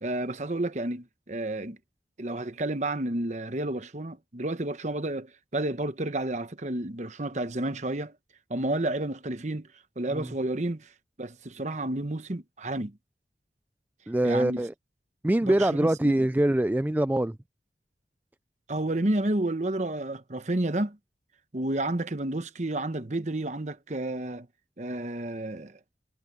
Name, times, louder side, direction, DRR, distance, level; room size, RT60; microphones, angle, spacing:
voice 1, 0.0-1.8 2.2-8.2 8.5-9.7 10.0-10.9 11.2-13.0 14.2-14.6 15.4-16.2 18.7-21.0 21.5-24.5 24.8-25.8, right 1 dB, 40° right, 1.1 m, -31 dB
voice 2, 14.1-14.7 15.2-17.4, right 1 dB, 10° right, 0.3 m, -24 dB
head